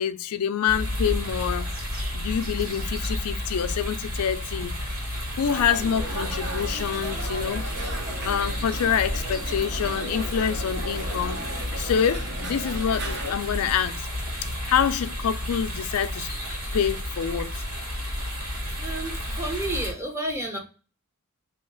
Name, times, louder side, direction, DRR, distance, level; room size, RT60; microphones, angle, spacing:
voice 1, 0.0-1.7 2.1-4.7 5.4-7.6 8.2-14.0 14.7-16.3 16.7-17.5, left 8 dB, 85° left, 0.4 m, -26 dB
sound 1, 0.7-19.9, left 1 dB, 75° right, 1.8 m, -31 dB
sound 2, 5.5-13.4, right 1 dB, 50° right, 0.8 m, -37 dB
voice 2, 18.8-20.6, right 1 dB, 10° right, 0.6 m, -31 dB
3.1 x 2.8 x 3.7 m
head